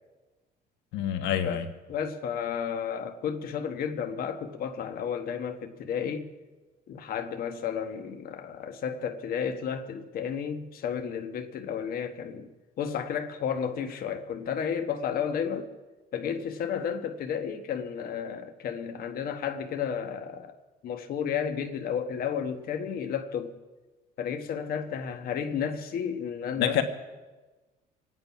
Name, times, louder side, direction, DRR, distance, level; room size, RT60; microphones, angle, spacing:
voice 1, 0.9-1.7 26.6-26.8, left 10 dB, 90° left, 1.4 m, -26 dB
voice 2, 1.4-6.3 6.9-12.5 12.8-15.7 16.1-20.5 20.8-23.6 24.2-26.8, left 7 dB, 60° left, 1.3 m, -32 dB
25.5 x 9.6 x 5.8 m
cardioid pair, 110°, 17 cm